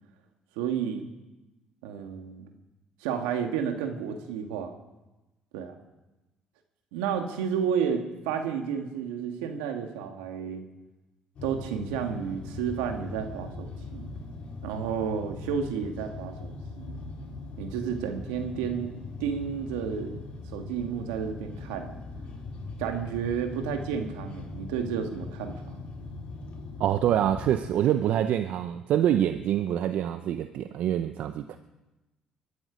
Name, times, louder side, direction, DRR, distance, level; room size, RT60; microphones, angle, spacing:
voice 1, 0.6-1.1 1.8-2.5 3.0-4.7 5.5-5.8 6.9-10.6 11.4-14.1 14.6-17.0 17.6-18.9 19.2-20.2 20.5-21.9 22.8-25.8, right 7 dB, 85° right, 5 dB, 1.9 m, -31 dB
sound 1, 11.3-27.5, left 3 dB, 55° left, 3.7 m, -40 dB
voice 2, 26.8-31.6, right 11 dB, 65° right, 9 dB, 0.8 m, -26 dB
23.0 x 12.0 x 5.1 m, 1.1 s
supercardioid pair, 65°, 3 cm